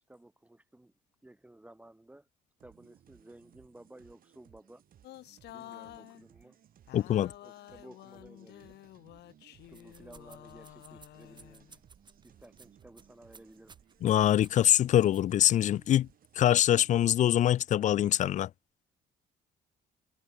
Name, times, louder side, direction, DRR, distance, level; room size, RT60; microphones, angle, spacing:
voice 1, 0.1-0.9 1.2-2.3 2.6-4.8 5.5-6.6 7.0-8.8 9.7-11.8 12.2-13.8, right 1 dB, 10° right, 2.2 m, -55 dB
sound 1, 2.6-17.4, right 10 dB, 55° right, 3.5 m, -62 dB
sound 2, 5.0-6.3 6.9-11.8, left 15 dB, 75° left, 1.5 m, -51 dB
voice 2, 6.9-7.3 14.0-16.1 16.4-18.5, left 12 dB, 45° left, 0.4 m, -24 dB
sound 3, 9.6-15.9, right 4 dB, 25° right, 7.5 m, -60 dB
cardioid pair, 125°, 17 cm